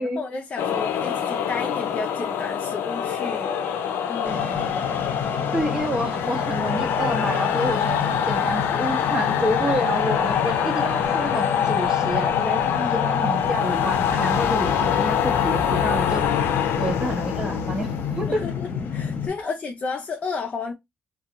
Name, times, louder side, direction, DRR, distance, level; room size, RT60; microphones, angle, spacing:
voice 1, 0.0-3.5 4.1-4.6 12.6-13.1 18.3-20.7, left 4 dB, 40° left, 0.5 m, -32 dB
sound 1, 0.6-19.1, left 8 dB, 90° left, 0.4 m, -25 dB
sound 2, 4.2-19.3, left 6 dB, 60° left, 0.8 m, -30 dB
voice 2, 5.5-12.6 12.9-16.2 16.7-18.4, equal, 20° right, 1.0 m, -28 dB
2.4 x 2.2 x 2.8 m
cardioid pair, 100°, 4 cm